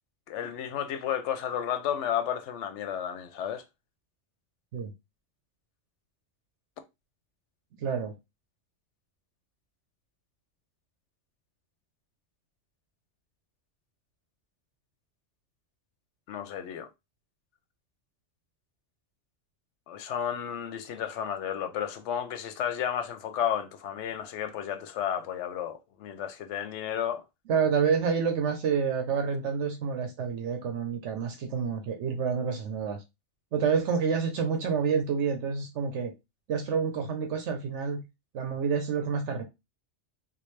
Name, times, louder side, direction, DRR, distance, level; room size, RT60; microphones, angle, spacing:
voice 1, 0.3-3.6 16.3-16.9 19.9-27.2, left 9 dB, 90° left, 0.9 m, -32 dB
voice 2, 7.8-8.1 27.5-33.0 33.5-36.1 36.5-38.0 38.3-39.4, right 6 dB, 80° right, 1.0 m, -28 dB
3.6 x 2.6 x 3.2 m
omnidirectional pair, 1.2 m